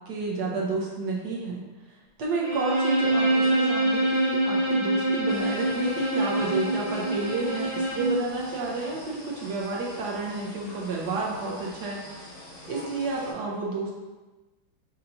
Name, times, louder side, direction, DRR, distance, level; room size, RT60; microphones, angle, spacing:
voice 1, 0.1-1.6 1.9-12.0 12.7-13.9, right 3 dB, 65° right, -3 dB, 1.1 m, -30 dB
Bowed string instrument, 2.4-8.2, right 1 dB, 35° right, 1.3 m, -25 dB
sound 1, 5.3-13.3, left 1 dB, 40° left, 0.8 m, -45 dB
6.5 x 2.8 x 2.6 m, 1.2 s
omnidirectional pair, 2.2 m